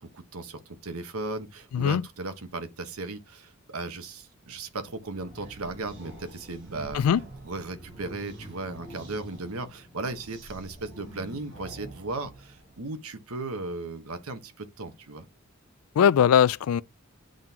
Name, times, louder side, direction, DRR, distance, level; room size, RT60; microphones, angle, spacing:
voice 1, 0.0-7.2 7.4-15.3, right 3 dB, 90° right, 1.2 m, -36 dB
sound 1, 4.8-12.8, right 1 dB, 55° right, 3.7 m, -46 dB
voice 2, 16.0-16.8, left 8 dB, 85° left, 0.3 m, -20 dB
8.7 x 3.8 x 2.9 m
head